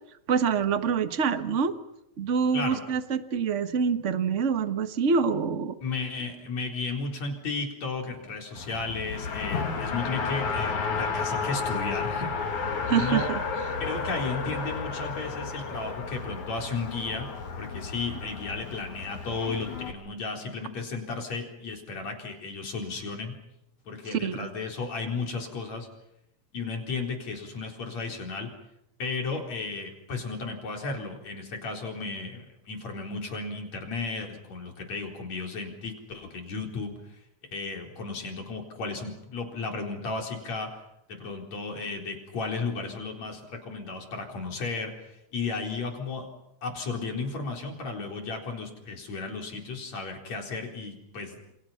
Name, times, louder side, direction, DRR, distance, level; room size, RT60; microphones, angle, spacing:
voice 1, 0.3-1.8 2.2-5.8 12.9-13.4 24.1-24.5, right 6 dB, 45° right, 9 dB, 0.9 m, -26 dB
voice 2, 5.8-12.4 12.9-13.3 13.8-17.3 17.6-23.3 23.9-25.9 26.5-28.5 29.0-36.9 37.5-40.7 41.1-46.3 46.6-51.4, left 4 dB, 65° left, 2 dB, 5.4 m, -34 dB
Race car auto racing, 8.6-19.9, left 5 dB, 85° left, 3.8 m, -32 dB
29.5 x 28.5 x 5.8 m, 0.82 s
omnidirectional pair, 3.3 m